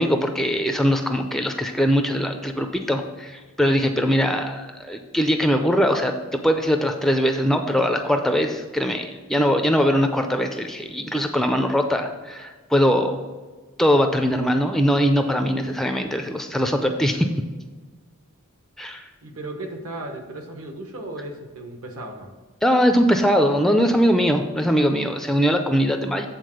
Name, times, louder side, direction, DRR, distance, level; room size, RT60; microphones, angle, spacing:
voice 1, 0.0-13.2 13.8-17.3 18.8-19.1 22.6-26.3, equal, ahead, 5 dB, 0.4 m, -21 dB
voice 2, 19.2-22.3, right 1 dB, 70° right, 4 dB, 1.2 m, -35 dB
8.4 x 4.0 x 6.3 m, 1.3 s
head